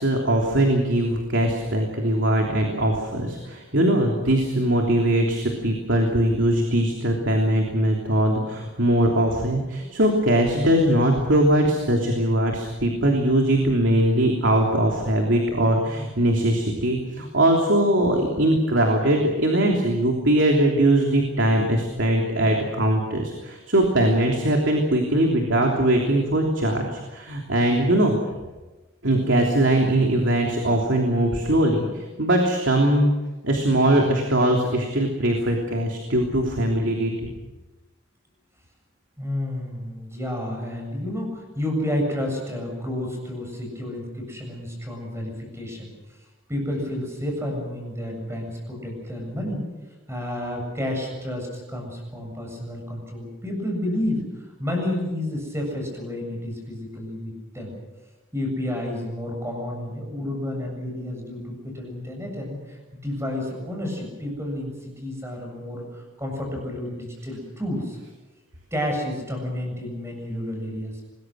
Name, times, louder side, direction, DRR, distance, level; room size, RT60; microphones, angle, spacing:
voice 1, 0.0-28.2 29.0-33.1 33.4-37.1, right 1 dB, 60° right, 1 dB, 3.2 m, -21 dB
voice 2, 39.2-45.9 46.5-49.7 50.1-54.3 54.6-57.8 58.3-68.0 68.7-71.0, left 1 dB, 15° right, 1 dB, 7.3 m, -30 dB
26.5 x 21.5 x 6.4 m, 1.1 s
head